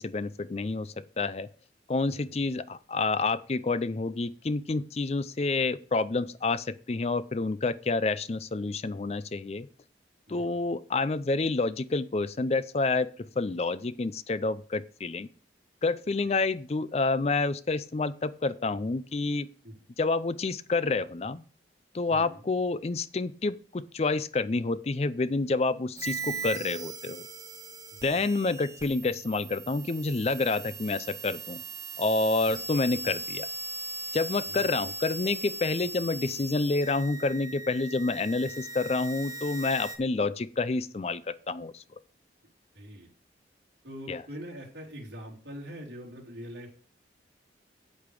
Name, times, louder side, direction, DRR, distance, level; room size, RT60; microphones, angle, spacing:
voice 1, 0.0-1.5 1.9-9.7 10.3-15.3 15.8-19.5 20.0-21.4 21.9-27.3 28.0-31.6 32.0-33.5 34.1-41.8 44.1-44.2, left 3 dB, 35° left, 15 dB, 0.4 m, -28 dB
voice 2, 10.3-10.7 16.2-16.5 19.6-19.8 22.1-22.5 27.9-28.5 32.4-32.6 34.4-34.8 42.7-43.1 43.8-46.8, equal, 70° right, -2 dB, 3.2 m, -44 dB
sound 1, 26.0-40.0, right 3 dB, 15° right, 1.1 m, -39 dB
8.5 x 7.8 x 4.8 m, 0.42 s
head